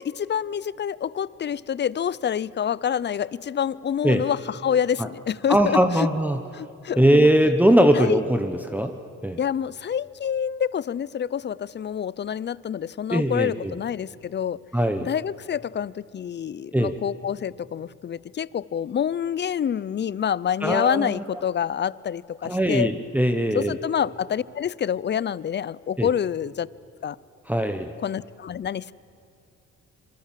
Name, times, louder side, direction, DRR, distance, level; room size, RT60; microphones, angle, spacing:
voice 1, 0.0-6.1 6.5-7.3 7.9-8.2 9.4-14.6 15.0-22.9 23.5-26.7 27.0-27.2 28.0-28.9, left 8 dB, 35° left, 21 dB, 0.5 m, -27 dB
voice 2, 5.5-6.4 7.0-8.9 9.2-9.4 13.1-13.7 14.7-15.1 16.7-16.9 20.6-21.2 22.4-23.8 26.0-26.1 27.5-27.9, right 1 dB, 5° right, 6 dB, 1.1 m, -20 dB
25.5 x 23.5 x 7.6 m, 2.5 s
cardioid pair, 90°, 30 cm